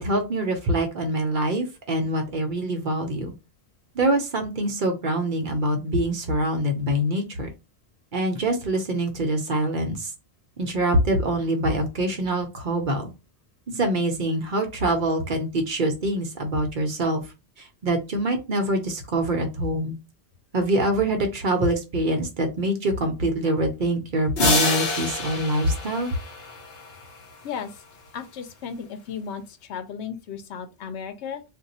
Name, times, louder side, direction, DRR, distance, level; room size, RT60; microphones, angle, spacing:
voice 1, 0.0-3.3 3.9-7.5 8.1-10.1 10.6-13.1 13.7-17.2 17.8-19.9 20.5-26.1, right 1 dB, 50° right, 0.8 m, -24 dB
sound 1, 24.4-27.1, left 3 dB, 65° left, 1.1 m, -26 dB
voice 2, 27.4-27.8 28.1-31.4, left 7 dB, 85° left, 0.9 m, -35 dB
2.5 x 2.3 x 4.1 m
omnidirectional pair, 1.1 m